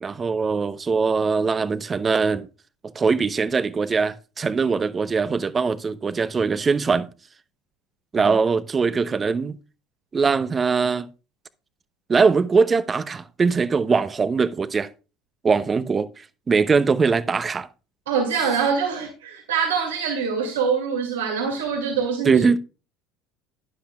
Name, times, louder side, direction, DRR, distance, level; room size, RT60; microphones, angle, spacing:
voice 1, 0.0-2.5 2.9-7.1 8.1-9.6 10.1-11.1 12.1-14.9 15.4-17.7 22.2-22.6, right 5 dB, 30° right, 0.7 m, -21 dB
voice 2, 18.1-22.4, right 6 dB, 80° right, 2.2 m, -24 dB
11.0 x 10.0 x 2.3 m
hypercardioid pair, 70°, 0 cm